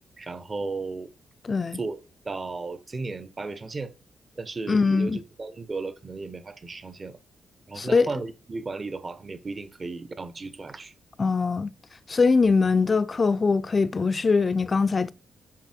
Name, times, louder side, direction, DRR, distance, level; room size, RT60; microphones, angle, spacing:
voice 1, 0.2-1.1 1.8-2.0 2.2-3.9 4.4-7.1 7.7-10.9, right 3 dB, 30° right, 1.1 m, -35 dB
voice 2, 1.4-1.8 4.7-5.2 7.8-8.1 11.2-11.7 12.1-15.1, left 4 dB, 30° left, 0.7 m, -22 dB
10.0 x 5.7 x 4.5 m
cardioid pair, 110°, 0 cm